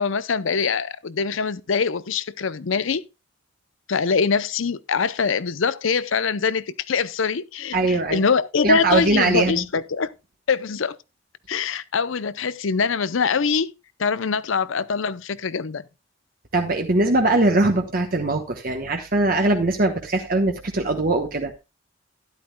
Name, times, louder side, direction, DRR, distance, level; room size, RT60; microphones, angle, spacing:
voice 1, 0.0-3.0 3.9-10.1 10.5-11.0 11.5-13.7 14.0-15.8, left 5 dB, 70° left, 0.6 m, -23 dB
voice 2, 7.7-8.2 8.6-9.6 16.5-21.5, right 2 dB, 45° right, 1.1 m, -21 dB
12.5 x 11.0 x 2.2 m
head